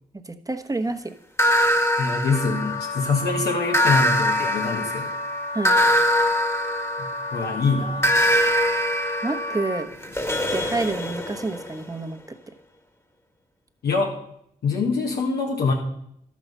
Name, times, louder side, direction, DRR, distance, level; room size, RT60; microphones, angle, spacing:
voice 1, 0.3-1.1 5.5-5.8 9.2-9.9 10.5-12.2, right 2 dB, 20° right, 7 dB, 1.1 m, -28 dB
sound 1, 1.4-3.1 3.7-7.4 8.0-11.8, equal, 15° left, 1.5 m, -23 dB
voice 2, 2.0-5.2 7.0-8.1 13.8-14.1 14.6-15.7, left 4 dB, 85° left, -1 dB, 1.6 m, -24 dB
Wind instrument woodwind instrument, 2.3-9.9, left 2 dB, 35° left, 1.0 m, -32 dB
11.5 x 7.4 x 5.5 m, 0.72 s
cardioid pair, 60°, 16 cm